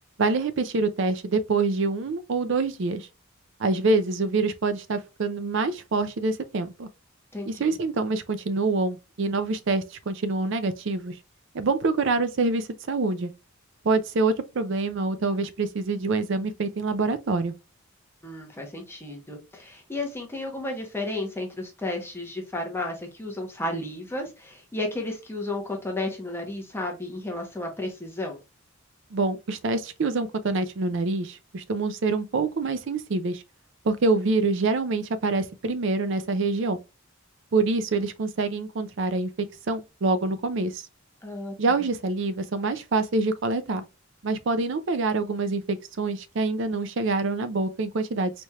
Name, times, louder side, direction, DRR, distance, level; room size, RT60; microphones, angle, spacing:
voice 1, 0.2-3.1 3.6-6.9 7.5-11.2 11.5-13.3 13.8-17.5 29.1-33.4 33.8-36.8 37.5-39.3 39.7-40.9 41.6-43.8 44.2-48.3, right 3 dB, 60° right, 0.5 m, -26 dB
voice 2, 7.3-7.8 18.2-28.4 41.2-41.8, left 2 dB, 10° left, 0.8 m, -33 dB
4.2 x 3.2 x 2.3 m
head